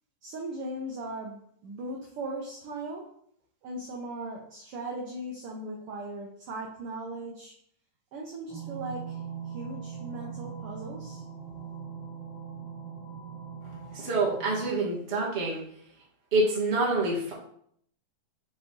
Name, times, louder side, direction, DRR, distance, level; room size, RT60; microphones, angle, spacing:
voice 1, 0.2-3.1 3.6-7.5 8.1-11.2, right 1 dB, 75° right, -1 dB, 1.3 m, -38 dB
sound 1, 8.5-14.7, right 7 dB, 15° left, 2.5 m, -41 dB
voice 2, 13.9-15.6 16.3-17.3, right 2 dB, 30° right, -5 dB, 1.2 m, -26 dB
6.2 x 4.9 x 3.8 m, 0.68 s
omnidirectional pair, 3.7 m